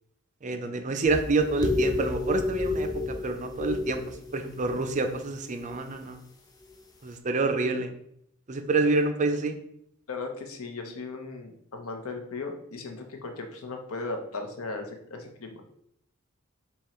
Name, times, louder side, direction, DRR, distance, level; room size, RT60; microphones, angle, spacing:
voice 1, 0.4-6.2 7.0-7.9 8.5-9.5, right 3 dB, 35° right, 7 dB, 0.4 m, -28 dB
sound 1, 1.0-5.1 5.6-5.9, left 2 dB, 20° left, 0.5 m, -31 dB
voice 2, 10.1-15.6, left 3 dB, 85° left, 4 dB, 0.8 m, -37 dB
3.7 x 3.0 x 4.2 m, 0.72 s
head